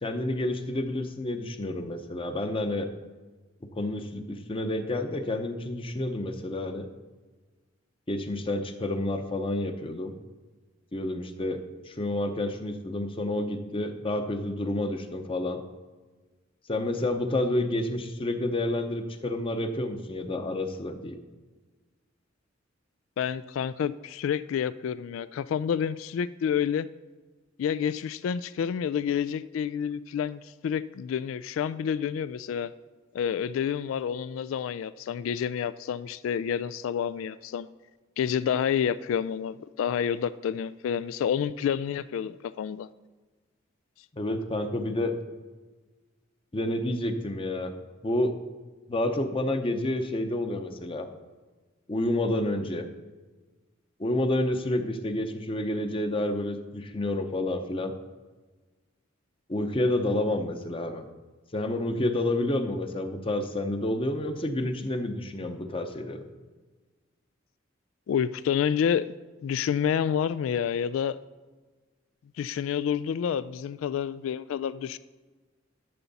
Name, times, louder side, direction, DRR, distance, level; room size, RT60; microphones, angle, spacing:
voice 1, 0.0-2.9 3.7-6.9 8.1-10.1 10.9-11.6 11.9-15.6 16.7-21.2 44.1-45.2 46.5-47.7 48.0-48.3 48.9-51.1 51.9-52.8 54.0-57.9 59.5-61.1 61.5-66.2, left 1 dB, 30° left, 7 dB, 0.8 m, -29 dB
voice 2, 23.2-26.9 27.6-32.7 33.1-37.7 38.2-42.9 68.1-69.1 69.4-71.2 72.4-75.0, left 8 dB, 85° left, 16 dB, 0.3 m, -29 dB
12.0 x 7.0 x 4.1 m, 1.3 s
head